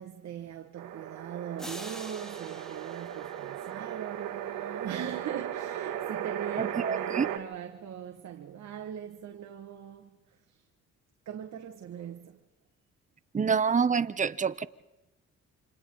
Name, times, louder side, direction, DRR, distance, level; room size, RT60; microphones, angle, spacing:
voice 1, 0.0-10.2 11.2-12.4, right 9 dB, 65° right, 1.6 m, -40 dB
sound 1, 0.8-7.4, right 10 dB, 85° right, 1.5 m, -36 dB
sound 2, 1.6-4.3, equal, ahead, 1.9 m, -46 dB
voice 2, 6.6-7.3 13.3-14.7, right 6 dB, 25° right, 0.8 m, -27 dB
29.5 x 26.5 x 3.8 m
cardioid pair, 90°, 30 cm